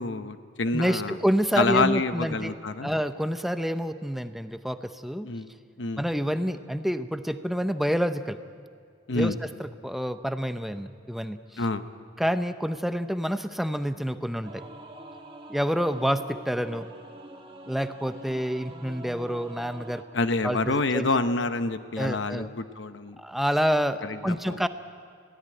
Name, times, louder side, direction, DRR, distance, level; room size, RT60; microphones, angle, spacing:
voice 1, 0.0-1.2 1.6-2.9 5.2-5.5 5.8-6.0 9.1-9.4 11.6-11.8 20.1-23.2 24.0-24.6, left 3 dB, 75° left, 10 dB, 0.9 m, -27 dB
voice 2, 0.7-2.5 2.8-5.3 6.0-8.4 9.1-11.6 12.2-14.6 15.5-16.9 17.7-20.0 20.4-21.1 22.0-22.5 23.2-24.7, equal, ahead, 10 dB, 0.6 m, -28 dB
Singing / Musical instrument, 14.4-20.0, right 1 dB, 30° right, 1.6 m, -45 dB
21.0 x 16.5 x 8.9 m, 2.1 s
head